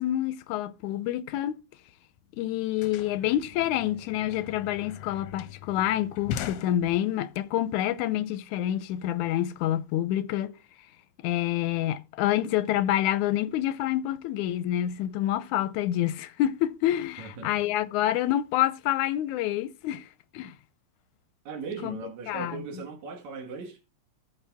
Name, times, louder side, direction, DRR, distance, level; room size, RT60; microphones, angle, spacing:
voice 1, 0.0-1.6 2.4-10.5 11.2-20.0 20.3-20.5 21.8-22.0 22.3-22.6, left 13 dB, 90° left, 2.1 m, -27 dB
sound 1, 1.9-2.0 2.2-7.4, left 10 dB, 75° left, 1.6 m, -40 dB
voice 2, 17.2-17.5 21.5-23.8, right 5 dB, 70° right, 2.9 m, -38 dB
14.0 x 5.9 x 3.4 m
omnidirectional pair, 3.4 m